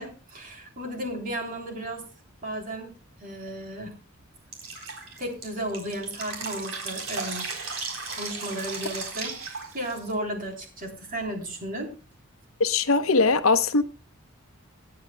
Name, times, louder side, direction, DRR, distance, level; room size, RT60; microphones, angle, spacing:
voice 1, 0.0-2.0 2.4-2.9 3.2-4.0 5.2-7.5 8.1-11.9, right 1 dB, 40° right, 3.4 m, -34 dB
Drip, 4.5-10.1, right 4 dB, 65° right, 3.8 m, -35 dB
voice 2, 12.6-13.8, left 3 dB, 70° left, 0.9 m, -21 dB
25.5 x 9.5 x 2.2 m
head